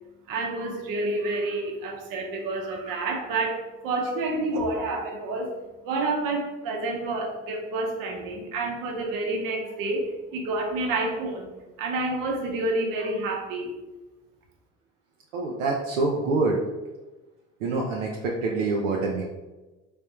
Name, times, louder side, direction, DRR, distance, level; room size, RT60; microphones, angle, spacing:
voice 1, 0.3-5.6 5.8-11.5 11.8-13.7, right 2 dB, 65° right, 2 dB, 0.9 m, -29 dB
voice 2, 15.3-16.6 17.6-19.2, right 3 dB, 85° right, -2 dB, 0.5 m, -26 dB
3.4 x 3.3 x 2.8 m, 1.1 s
hypercardioid pair, 60°, 36 cm